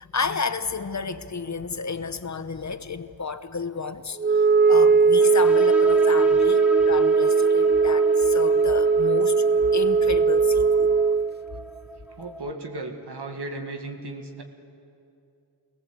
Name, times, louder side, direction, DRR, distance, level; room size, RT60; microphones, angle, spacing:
voice 1, 0.0-9.4 9.7-11.0, left 4 dB, 40° left, 11 dB, 1.0 m, -32 dB
Wind instrument woodwind instrument, 4.2-11.3, right 5 dB, 25° right, 0.4 m, -19 dB
sound 1, 5.2-12.5, equal, 5° right, 1.7 m, -36 dB
voice 2, 12.2-14.4, right 2 dB, 70° right, 4 dB, 2.0 m, -35 dB
21.0 x 18.5 x 8.0 m, 2.7 s
cardioid pair, 45°, 42 cm